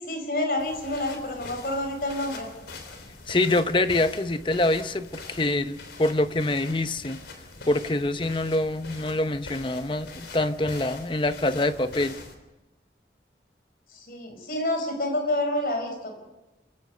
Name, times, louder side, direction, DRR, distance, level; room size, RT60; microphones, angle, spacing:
voice 1, 0.0-2.5 13.9-16.1, left 1 dB, 55° left, 5 dB, 5.3 m, -28 dB
sound 1, 0.6-12.4, left 3 dB, 80° left, 3.4 m, -43 dB
voice 2, 3.3-7.2 7.7-12.2, left 2 dB, 30° left, 11 dB, 0.8 m, -25 dB
26.0 x 16.0 x 6.7 m, 1.1 s
head